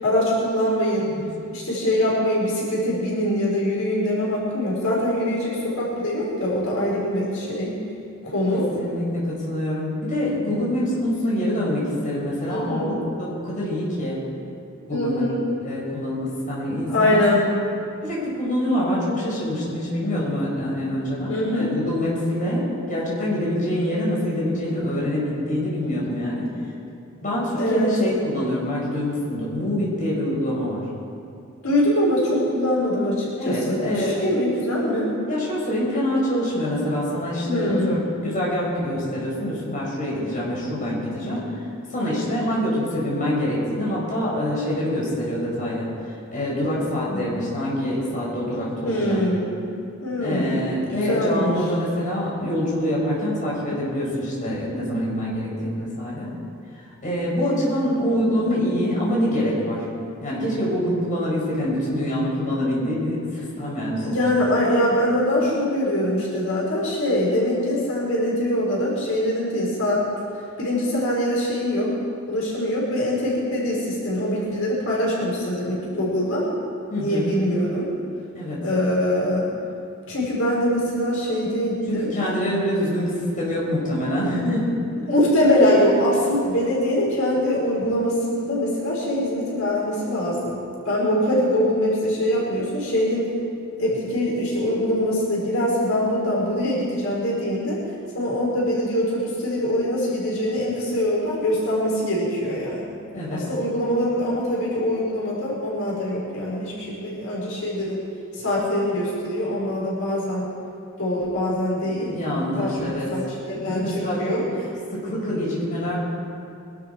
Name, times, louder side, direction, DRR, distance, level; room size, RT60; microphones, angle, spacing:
voice 1, 0.0-1.1 1.5-7.8 8.2-8.6 12.5-12.9 14.9-15.4 16.9-17.4 21.3-21.8 27.5-27.9 31.6-35.1 37.4-37.9 47.0-47.3 48.8-49.6 50.0-50.6 50.9-51.5 64.0-70.0 70.6-71.9 72.3-76.5 76.9-77.9 78.6-79.4 80.1-82.1 85.1-90.6 90.8-93.3 93.8-97.8 98.1-102.8 103.3-108.0 108.3-110.5 111.0-112.1 112.6-112.7 113.1-113.8 114.2-114.4, left 1 dB, 85° left, -6 dB, 5.0 m, -23 dB
voice 2, 8.5-12.9 13.2-14.2 14.9-15.2 15.6-17.3 18.0-26.5 27.2-30.9 33.4-34.2 35.3-41.5 41.9-49.2 50.2-56.3 57.0-59.9 60.2-64.2 76.9-77.3 78.4-78.6 81.9-84.7 85.6-85.7 85.9-86.0 103.1-103.5 111.8-113.1 113.5-114.4 114.9-116.0, equal, 40° left, -6 dB, 5.3 m, -25 dB
24.0 x 12.5 x 4.7 m, 2.5 s
head